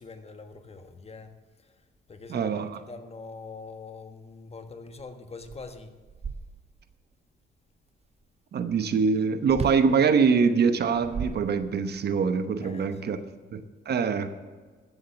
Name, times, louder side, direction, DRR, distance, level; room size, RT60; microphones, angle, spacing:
voice 1, 0.0-1.7 2.1-6.0 12.6-13.3, left 4 dB, 30° left, 7 dB, 1.4 m, -44 dB
voice 2, 2.3-2.8 8.5-13.2 13.5-14.3, right 5 dB, 55° right, 10 dB, 1.0 m, -24 dB
sound 1, 5.0-5.1 5.4-6.9 9.5-9.9 10.8-12.0, right 5 dB, 30° right, 0.7 m, -36 dB
14.0 x 7.5 x 6.9 m, 1.4 s
cardioid pair, 90°, 20 cm